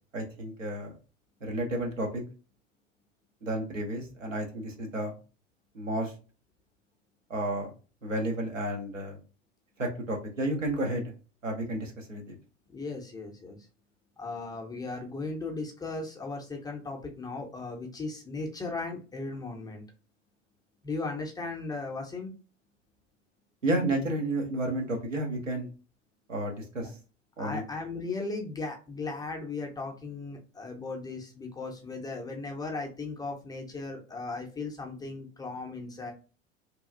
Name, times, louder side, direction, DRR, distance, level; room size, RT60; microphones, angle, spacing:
voice 1, 0.1-0.9 1.4-2.2 3.4-5.1 5.7-6.1 7.3-7.7 8.0-9.2 9.8-11.0 11.4-12.3 23.6-25.7 26.3-26.9 27.4-27.6, right 1 dB, 85° right, 2 dB, 0.9 m, -31 dB
voice 2, 12.7-13.6 14.2-19.8 20.8-22.3 26.8-26.9 27.4-36.1, left 3 dB, 10° left, 2 dB, 0.5 m, -37 dB
2.9 x 2.3 x 2.4 m, 0.34 s
figure-of-eight pair, 85°, 37 cm